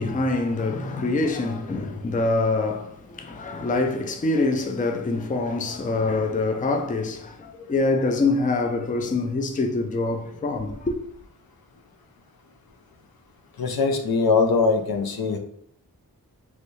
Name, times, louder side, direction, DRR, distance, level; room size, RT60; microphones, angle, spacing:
voice 1, 0.0-10.9, left 3 dB, 20° left, 0.4 m, -25 dB
voice 2, 13.6-15.4, left 4 dB, 70° left, 0.6 m, -21 dB
3.1 x 2.6 x 3.1 m
wide cardioid pair, 65°, 37 cm